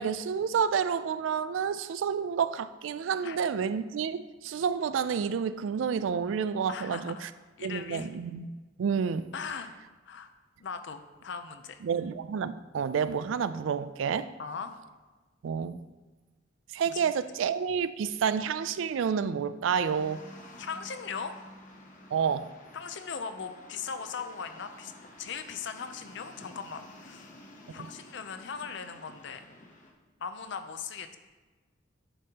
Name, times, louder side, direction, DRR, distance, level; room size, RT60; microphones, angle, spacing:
voice 1, 0.0-7.3 7.6-8.5 8.8-9.3 11.8-14.3 15.4-15.8 16.7-20.2 22.1-22.5 27.8-27.9, right 7 dB, 90° right, 0.3 m, -29 dB
voice 2, 6.7-7.3 7.6-8.1 9.3-9.7 10.1-10.3 10.6-11.8 14.4-14.7 16.9-17.1 20.6-21.3 22.7-24.9 25.2-27.3 27.7-29.5 30.2-31.2, left 6 dB, 70° left, 0.5 m, -39 dB
sound 1, 19.8-29.9, left 1 dB, 45° left, 0.9 m, -51 dB
9.7 x 5.3 x 2.9 m
head